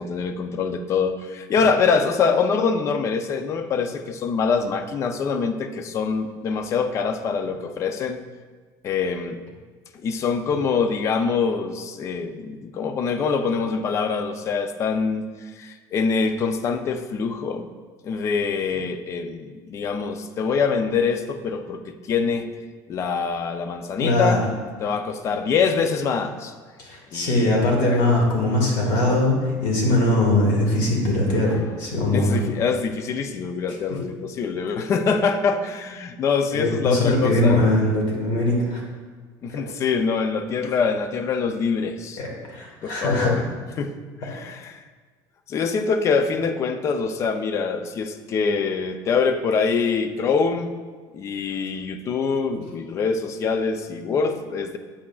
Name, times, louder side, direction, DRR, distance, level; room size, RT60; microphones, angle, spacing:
voice 1, 0.0-8.2 8.8-9.4 10.0-17.7 18.0-22.5 22.9-24.4 24.8-26.5 27.1-28.0 31.5-31.6 32.1-37.6 39.4-42.2 42.8-43.4 43.8-43.9 44.2-44.8 45.5-50.7 51.1-54.8, left 5 dB, 35° left, 8 dB, 0.4 m, -24 dB
voice 2, 24.0-24.4 26.8-32.4 36.5-38.8 39.5-39.6 42.2-43.3, left 1 dB, 65° left, -1 dB, 2.1 m, -21 dB
8.4 x 8.3 x 2.3 m, 1.5 s
cardioid pair, 150°, 9 cm